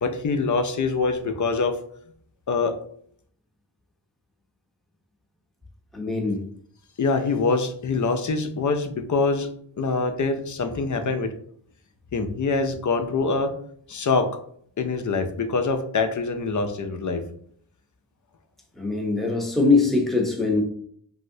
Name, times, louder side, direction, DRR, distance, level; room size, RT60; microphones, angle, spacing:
voice 1, 0.0-1.8 2.5-2.7 7.0-9.5 9.8-11.3 12.1-13.5 13.9-14.3 14.8-17.2, left 4 dB, 45° left, 7 dB, 0.5 m, -24 dB
voice 2, 5.9-6.4 18.8-20.6, left 3 dB, ahead, 0 dB, 0.7 m, -22 dB
3.0 x 2.7 x 2.6 m, 0.62 s
wide cardioid pair, 65°, 43 cm